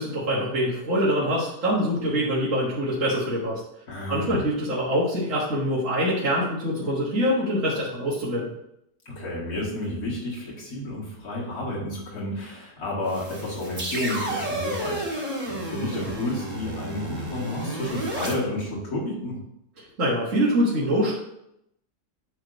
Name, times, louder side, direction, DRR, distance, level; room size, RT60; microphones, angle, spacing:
voice 1, 0.0-3.6 4.1-8.5 19.8-21.1, equal, 55° right, -7 dB, 1.8 m, -24 dB
voice 2, 3.9-4.4 9.1-19.4, left 1 dB, 80° left, -5 dB, 2.5 m, -31 dB
sound 1, 13.1-18.3, right 1 dB, 25° right, 1.8 m, -32 dB
9.0 x 3.2 x 5.2 m, 0.81 s
omnidirectional pair, 1.6 m